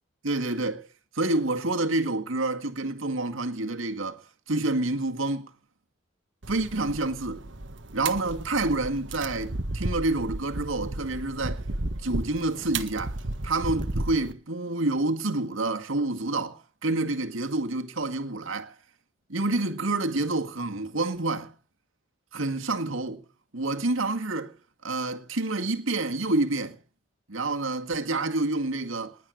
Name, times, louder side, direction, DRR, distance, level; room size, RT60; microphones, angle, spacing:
voice 1, 0.2-0.9 1.1-5.5 6.5-7.4 7.9-11.6 12.0-13.2 13.4-18.7 19.3-21.5 22.3-23.2 23.5-24.5 24.8-26.8 27.3-29.2, right 2 dB, 85° right, 1.9 m, -28 dB
sound 1, 6.4-14.3, right 2 dB, 65° right, 1.4 m, -34 dB
20.0 x 8.9 x 6.4 m
head